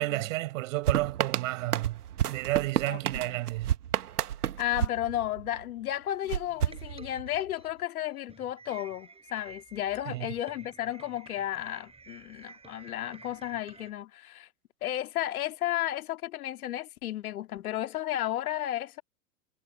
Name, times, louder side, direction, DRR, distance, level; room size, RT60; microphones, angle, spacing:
voice 1, 0.0-2.0 2.3-3.7 10.0-10.3, right 18 dB, 55° right, 5.1 m, -31 dB
sound 1, 0.9-5.7 6.3-7.5, right 10 dB, 80° right, 1.5 m, -31 dB
voice 2, 2.9-3.4 4.6-14.5 14.8-19.0, left 13 dB, 65° left, 2.4 m, -33 dB
sound 2, 5.5-13.9, right 4 dB, 10° right, 7.1 m, -52 dB
hypercardioid pair, 110°, 46 cm